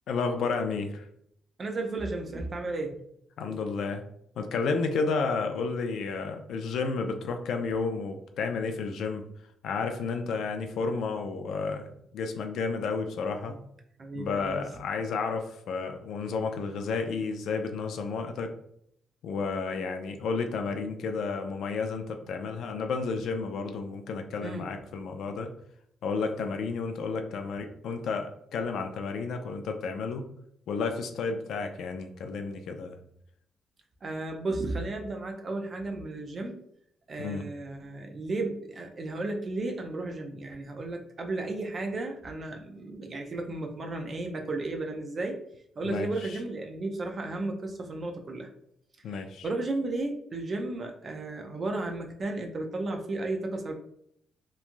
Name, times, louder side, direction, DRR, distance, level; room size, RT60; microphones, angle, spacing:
voice 1, 0.1-1.1 3.4-4.0 4.4-9.2 9.6-13.6 14.1-18.5 19.2-25.5 26.0-30.2 30.7-33.0 37.2-37.4 45.8-46.4 49.0-49.5, left 4 dB, 65° left, 6 dB, 0.3 m, -31 dB
voice 2, 1.6-3.0 14.0-14.7 24.4-24.7 34.0-36.6 37.1-45.4 45.8-48.5 49.4-53.7, right 2 dB, 30° right, 3 dB, 0.4 m, -34 dB
3.0 x 2.3 x 2.5 m, 0.72 s
cardioid pair, 165°, 0 cm